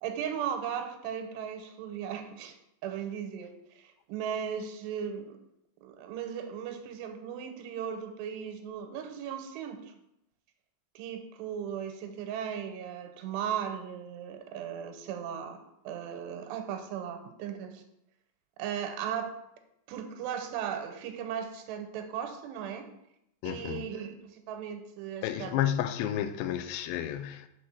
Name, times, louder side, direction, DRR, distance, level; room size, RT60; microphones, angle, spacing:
voice 1, 0.0-2.6 2.8-5.4 5.8-9.9 11.0-15.6 15.8-17.8 18.6-19.3 19.9-22.9 23.4-25.7, right 8 dB, 90° right, 2.8 m, -37 dB
voice 2, 23.4-23.9 25.2-27.5, left 11 dB, 85° left, 2.2 m, -31 dB
6.3 x 4.3 x 5.9 m
omnidirectional pair, 4.9 m